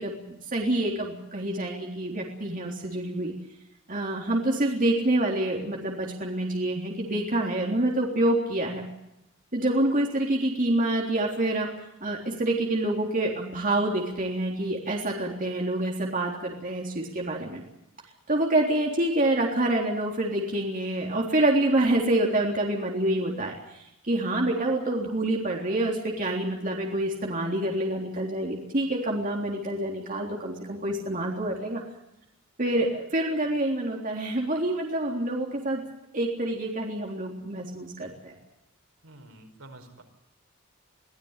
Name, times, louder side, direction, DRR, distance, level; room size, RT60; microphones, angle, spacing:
voice 1, 0.0-3.3 3.9-8.8 9.5-11.7 12.0-17.6 18.3-23.5 24.1-31.8 32.6-35.8 36.1-38.4, right 1 dB, 40° right, -1 dB, 3.6 m, -27 dB
voice 2, 39.0-40.0, right 1 dB, 75° right, 4 dB, 4.9 m, -48 dB
24.5 x 16.0 x 8.3 m, 0.85 s
head